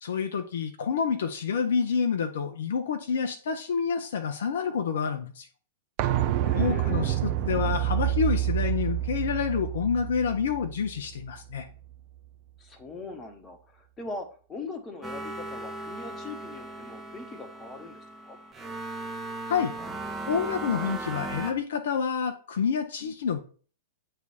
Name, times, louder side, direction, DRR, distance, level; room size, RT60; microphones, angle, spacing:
voice 1, 0.0-5.5 6.5-11.7 19.5-19.7 20.3-23.4, left 6 dB, 60° left, 6 dB, 0.6 m, -28 dB
sound 1, 6.0-11.6 11.9-12.0, right 13 dB, 40° right, 0.5 m, -28 dB
voice 2, 6.4-7.2 12.6-18.4, left 3 dB, 20° left, 5 dB, 1.1 m, -41 dB
sound 2, 15.0-21.5, right 2 dB, 10° right, 0.9 m, -37 dB
8.1 x 3.3 x 4.1 m, 0.40 s
figure-of-eight pair, 100°, 0 cm